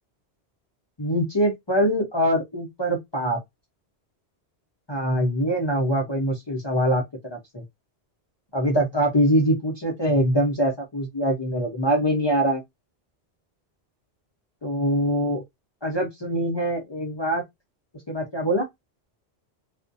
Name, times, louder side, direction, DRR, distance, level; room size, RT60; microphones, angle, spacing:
voice 1, 1.0-3.4 4.9-7.0 7.3-7.6 8.5-12.6 14.6-15.4 15.8-17.4 18.1-18.6, right 1 dB, 30° left, 0.6 m, -23 dB
2.4 x 2.1 x 2.6 m
omnidirectional pair, 1.1 m